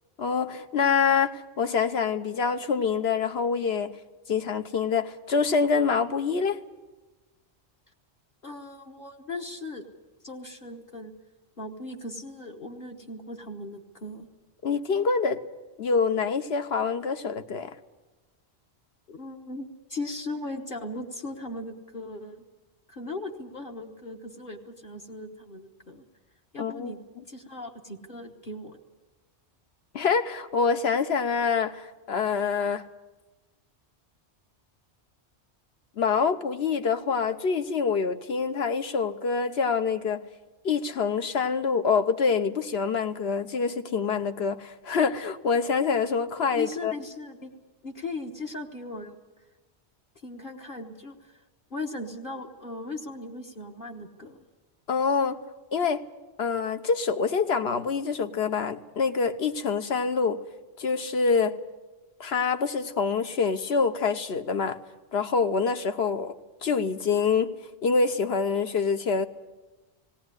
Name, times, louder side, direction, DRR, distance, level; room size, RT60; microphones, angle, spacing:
voice 1, 0.2-3.9 4.3-6.6 14.6-15.4 15.8-17.7 26.6-27.0 29.9-32.9 36.0-40.2 40.6-46.9 54.9-55.4 55.7-56.0 56.4-60.4 60.8-61.6 62.2-64.8 65.1-66.3 66.6-67.5 67.8-69.3, left 5 dB, 70° left, 1.2 m, -26 dB
voice 2, 8.4-9.8 10.2-11.1 11.6-14.3 19.1-22.4 22.9-26.0 26.5-27.0 27.3-28.8 46.5-47.5 47.8-49.2 50.2-51.4 51.7-54.4, left 2 dB, 55° left, 1.5 m, -38 dB
18.5 x 18.0 x 9.7 m
omnidirectional pair, 1.1 m